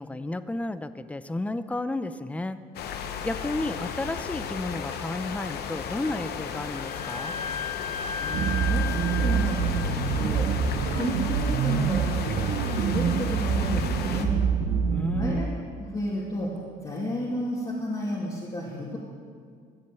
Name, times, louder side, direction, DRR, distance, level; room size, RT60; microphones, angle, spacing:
voice 1, 0.0-2.6 2.9-7.3 14.9-15.7, left 2 dB, 10° left, 13 dB, 0.5 m, -32 dB
sound 1, 2.7-14.2, left 7 dB, 70° left, 1.0 m, -35 dB
Wind instrument woodwind instrument, 6.7-14.2, left 6 dB, 45° left, 0.9 m, -38 dB
voice 2, 8.2-10.5 10.8-14.3 15.2-15.5 15.8-16.5 16.8-19.0, left 1 dB, 30° left, -6 dB, 2.5 m, -32 dB
sound 2, 8.3-15.4, right 7 dB, 75° right, 1.1 m, -26 dB
15.0 x 8.4 x 6.9 m, 2.1 s
cardioid pair, 110°, 17 cm